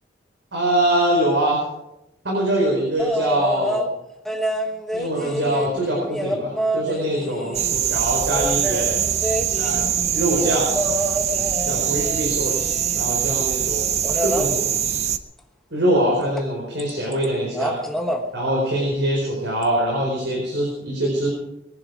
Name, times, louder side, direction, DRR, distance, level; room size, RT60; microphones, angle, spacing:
voice 1, 0.5-1.6 2.2-3.9 4.9-9.1 9.5-9.9 10.1-10.7 11.6-14.8 15.7-17.8 18.3-21.3, right 1 dB, 75° right, -3 dB, 4.7 m, -23 dB
sound 1, 3.0-3.9 4.3-7.8 8.3-13.2 14.0-14.5 16.4-16.5 16.8-17.3 17.5-18.2 19.6-19.7, equal, ahead, 1.1 m, -28 dB
sound 2, 7.5-15.2, right 9 dB, 35° right, 0.7 m, -23 dB
21.0 x 11.0 x 4.9 m, 0.88 s
head